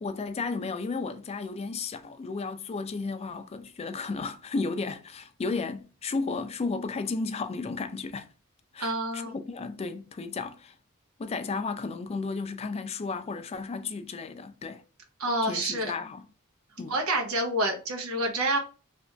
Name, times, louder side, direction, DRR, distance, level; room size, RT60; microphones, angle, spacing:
voice 1, 0.0-8.3 8.7-10.7 11.2-14.8 15.4-16.3 16.8-17.0, left 4 dB, 30° left, 0.3 m, -33 dB
voice 2, 8.8-9.4 15.2-15.9 16.9-18.6, right 1 dB, 90° right, 0.8 m, -28 dB
2.9 x 2.5 x 3.3 m
head